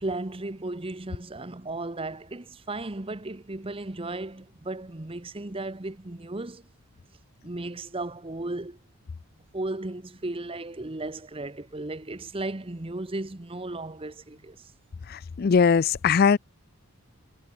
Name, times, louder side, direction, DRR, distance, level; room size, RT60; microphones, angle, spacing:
voice 1, 0.0-6.6 7.4-8.8 9.5-14.7, right 2 dB, 25° right, 0.9 m, -35 dB
voice 2, 15.1-16.4, left 6 dB, 45° left, 0.4 m, -20 dB
head